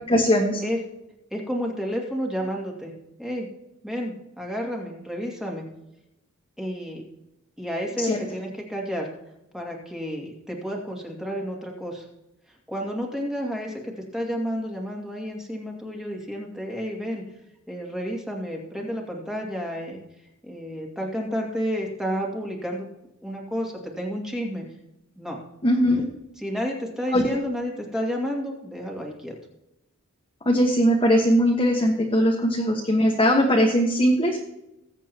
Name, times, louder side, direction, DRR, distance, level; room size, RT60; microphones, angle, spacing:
voice 1, 0.1-0.6 8.0-8.2 25.6-26.0 27.1-27.2 30.4-34.4, equal, 25° left, -1 dB, 1.4 m, -20 dB
voice 2, 1.3-2.9 3.2-3.5 3.8-5.6 6.6-7.0 7.6-9.1 9.5-12.1 12.7-17.2 17.7-20.0 20.4-22.9 23.2-24.6 25.2-25.4 26.4-29.3, equal, ahead, -1 dB, 2.3 m, -31 dB
20.5 x 8.3 x 2.9 m, 0.89 s
head